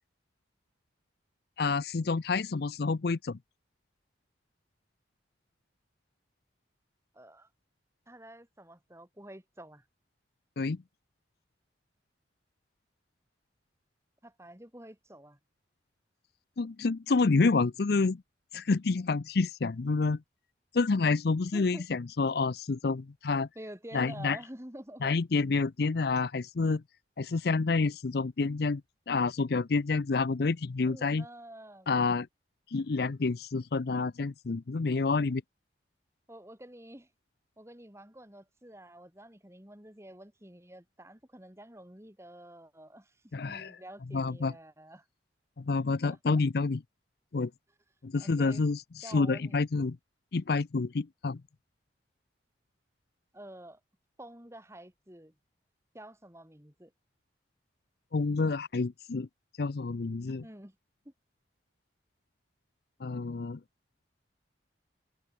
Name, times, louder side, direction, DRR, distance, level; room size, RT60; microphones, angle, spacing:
voice 1, 1.6-3.4 10.6-10.8 16.6-18.2 18.5-20.2 20.7-23.5 23.9-24.4 25.0-26.8 27.2-28.8 29.1-31.2 31.9-32.3 32.7-35.4 43.3-43.7 44.1-44.5 45.6-46.8 47.3-47.5 48.0-48.8 49.1-50.0 50.3-51.4 58.1-59.3 59.6-60.4 63.0-63.6, left 4 dB, 55° left, 0.5 m, -28 dB
voice 2, 7.1-7.5 8.1-9.8 14.2-15.4 21.5-21.9 23.5-25.1 30.9-31.9 36.3-37.1 37.6-45.1 46.0-46.4 48.2-48.7 49.0-49.6 53.3-53.8 54.2-55.3 55.9-56.9 60.4-60.8 61.0-61.1, right 1 dB, 15° right, 2.9 m, -49 dB
head